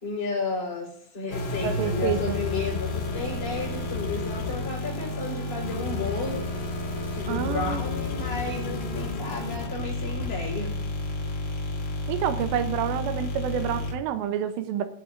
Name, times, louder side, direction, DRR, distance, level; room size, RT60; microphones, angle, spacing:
voice 1, 0.0-6.5 7.1-10.8, left 3 dB, 25° left, -8 dB, 4.7 m, -33 dB
sound 1, 1.3-13.9, left 3 dB, 45° left, 1.8 m, -31 dB
voice 2, 1.6-2.4 7.3-7.8 12.1-14.9, right 10 dB, 85° right, 9 dB, 3.0 m, -28 dB
19.0 x 9.8 x 2.6 m, 0.69 s
omnidirectional pair, 5.0 m